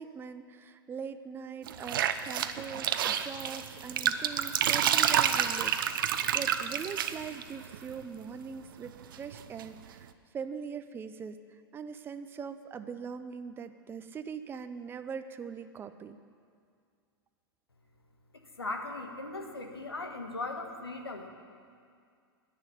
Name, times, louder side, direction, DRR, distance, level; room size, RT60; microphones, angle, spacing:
voice 1, 0.0-10.1 10.3-11.4 11.7-16.2, right 6 dB, 15° right, 10 dB, 0.6 m, -41 dB
sound 1, 1.7-7.9 8.9-9.6, right 9 dB, 60° right, 0.7 m, -29 dB
voice 2, 18.3-21.3, left 2 dB, 85° left, 4 dB, 1.5 m, -38 dB
10.5 x 9.4 x 9.9 m, 2.2 s
figure-of-eight pair, 95°, 13 cm